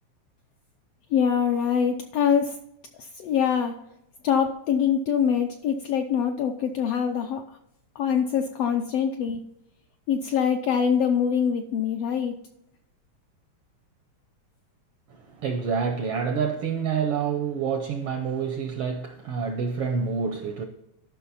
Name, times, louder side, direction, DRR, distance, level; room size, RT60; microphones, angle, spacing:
voice 1, 1.1-2.6 3.0-3.8 4.2-7.4 7.9-9.4 10.1-12.3, left 7 dB, 80° left, 1.4 m, -24 dB
voice 2, 15.1-20.6, right 6 dB, 75° right, 1.3 m, -28 dB
12.5 x 5.9 x 4.1 m
omnidirectional pair, 3.4 m